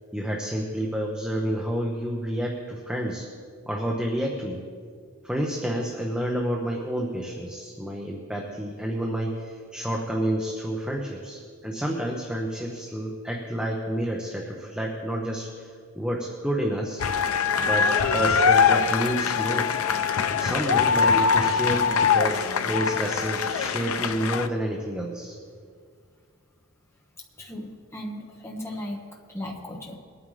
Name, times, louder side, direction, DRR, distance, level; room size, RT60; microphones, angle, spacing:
voice 1, 0.1-3.3 3.7-4.7 5.2-15.7 15.9-17.0 17.6-19.8 20.3-25.4, equal, 5° right, -1 dB, 0.8 m, -29 dB
sound 1, 17.0-24.5, left 6 dB, 85° left, 0.6 m, -23 dB
voice 2, 27.4-30.0, left 1 dB, 10° left, 0 dB, 1.1 m, -36 dB
21.5 x 9.1 x 3.3 m, 2.1 s
head